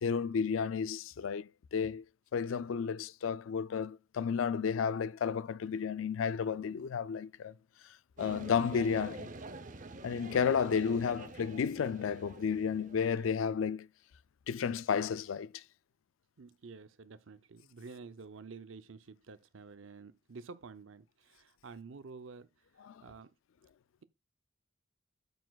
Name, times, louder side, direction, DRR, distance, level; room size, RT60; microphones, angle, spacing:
voice 1, 0.0-2.0 2.3-7.5 8.2-9.3 10.0-13.9 14.5-15.6 22.8-23.0, left 6 dB, 90° left, 0.4 m, -32 dB
sound 1, 8.2-13.5, right 2 dB, 40° right, 0.7 m, -47 dB
voice 2, 16.4-22.5 23.0-23.3, right 4 dB, 80° right, 0.6 m, -50 dB
8.9 x 8.2 x 2.3 m
head